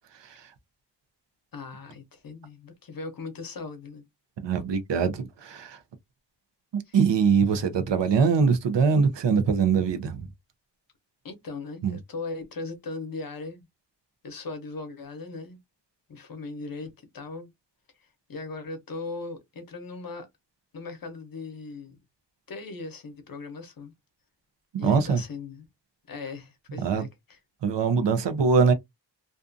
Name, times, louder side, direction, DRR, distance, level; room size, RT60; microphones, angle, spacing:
voice 1, 0.2-0.5 4.4-5.8 6.7-10.3 11.8-12.0 24.7-25.2 26.8-27.1 27.6-28.7, right 5 dB, 75° right, 0.7 m, -23 dB
voice 2, 1.5-4.0 6.9-7.0 7.4-7.5 11.2-13.6 14.2-15.6 16.1-17.5 18.3-20.3 20.7-22.0 22.5-23.9 24.8-25.6 26.1-27.4, left 3 dB, 55° left, 0.8 m, -38 dB
2.5 x 2.3 x 2.5 m
wide cardioid pair, 175°, 43 cm